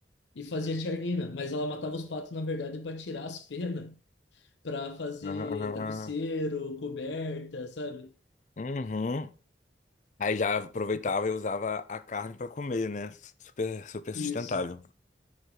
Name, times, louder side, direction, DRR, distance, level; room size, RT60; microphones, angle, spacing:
voice 1, 0.4-4.0 4.6-8.1 14.1-14.7, left 3 dB, 90° left, 0.6 m, -34 dB
voice 2, 5.2-6.1 8.6-9.3 10.2-13.3 13.6-14.8, left 4 dB, 45° left, 0.5 m, -32 dB
9.4 x 4.8 x 3.8 m
head